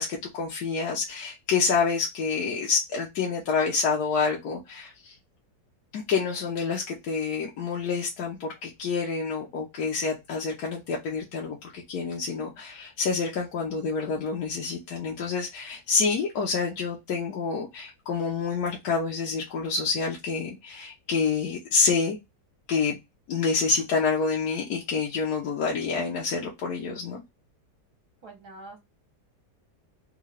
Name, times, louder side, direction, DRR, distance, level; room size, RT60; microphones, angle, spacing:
voice 1, 0.0-5.1 5.9-22.2 22.7-23.0 23.3-27.2, left 5 dB, 70° left, -2 dB, 1.2 m, -28 dB
voice 2, 28.2-28.8, right 2 dB, 60° right, 0 dB, 1.3 m, -44 dB
3.6 x 2.3 x 3.2 m, 0.21 s
omnidirectional pair, 1.8 m